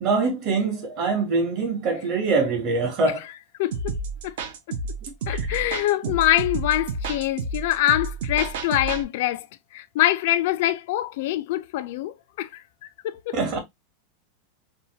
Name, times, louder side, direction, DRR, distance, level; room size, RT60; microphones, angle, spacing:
voice 1, 0.0-3.2 5.3-5.6 6.0-6.1 13.3-13.6, right 4 dB, 35° right, 0.9 m, -24 dB
voice 2, 3.6-4.0 4.2-4.3 5.3-9.5 9.7-13.4, left 14 dB, 55° left, 0.3 m, -24 dB
sound 1, 3.7-9.0, right 3 dB, 65° right, 0.6 m, -30 dB
2.7 x 2.2 x 2.8 m
supercardioid pair, 175°, 0 cm